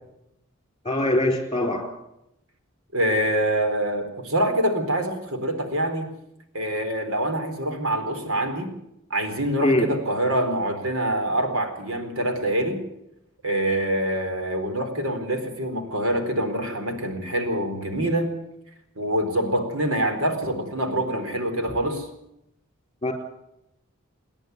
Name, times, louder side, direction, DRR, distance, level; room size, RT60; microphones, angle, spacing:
voice 1, 0.8-1.9 9.6-9.9 23.0-23.1, left 1 dB, 25° left, 5 dB, 4.1 m, -22 dB
voice 2, 2.9-6.1 6.5-8.7 9.1-12.8 13.4-18.3 19.0-22.1, right 1 dB, 75° right, 6 dB, 4.1 m, -25 dB
29.0 x 10.5 x 9.6 m, 0.85 s
head